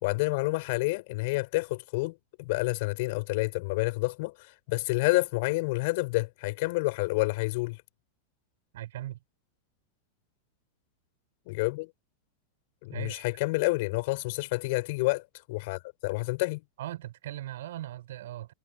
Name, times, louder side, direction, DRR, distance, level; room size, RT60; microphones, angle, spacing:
voice 1, 0.0-7.8 11.5-11.9 12.8-15.2 15.5-16.6, left 24 dB, 50° left, 4.3 m, -29 dB
voice 2, 8.7-9.2 12.9-13.2 16.8-18.5, right 14 dB, 55° right, 6.6 m, -39 dB
figure-of-eight pair, 90°, 0 cm